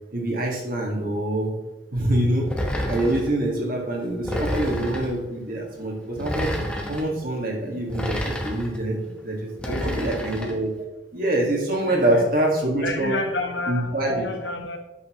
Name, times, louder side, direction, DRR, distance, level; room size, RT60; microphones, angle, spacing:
voice 1, 0.1-1.5 1.9-2.5 2.9-6.5 6.9-10.7 11.1-13.2 13.7-14.3, right 1 dB, 55° right, -1 dB, 2.0 m, -25 dB
sound 1, 2.5-3.3 4.2-5.2 6.2-7.1 7.9-8.8 9.6-10.6, equal, 5° left, 1.1 m, -29 dB
voice 2, 9.6-10.3 11.9-12.2 12.8-14.8, left 2 dB, 75° left, 4 dB, 1.2 m, -30 dB
8.6 x 6.6 x 3.1 m, 0.99 s
head